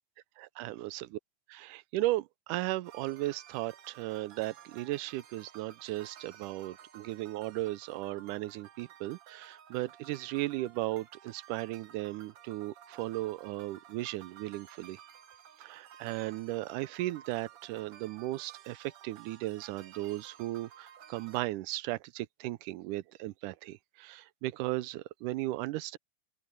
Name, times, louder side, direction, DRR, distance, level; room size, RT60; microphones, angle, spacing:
voice 1, 0.4-0.8 1.5-15.0 15.6-26.0, right 17 dB, 80° right, 2.1 m, -36 dB
sound 1, 2.8-21.4, right 10 dB, 60° right, 1.7 m, -55 dB
open air
omnidirectional pair, 3.8 m